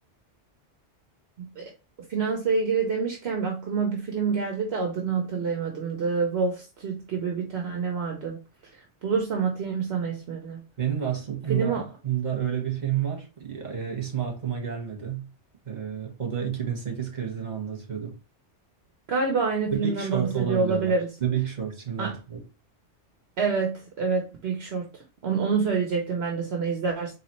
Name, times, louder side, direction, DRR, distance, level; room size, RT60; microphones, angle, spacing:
voice 1, 1.4-1.7 2.1-8.4 8.7-10.6 11.5-11.9 19.1-21.1 22.0-22.2 23.4-27.1, right 5 dB, 65° right, 1.0 m, -27 dB
voice 2, 10.8-15.3 15.6-18.1 19.7-20.9 21.2-22.4, right 9 dB, 40° right, 1.4 m, -30 dB
4.1 x 3.2 x 3.0 m
omnidirectional pair, 1.2 m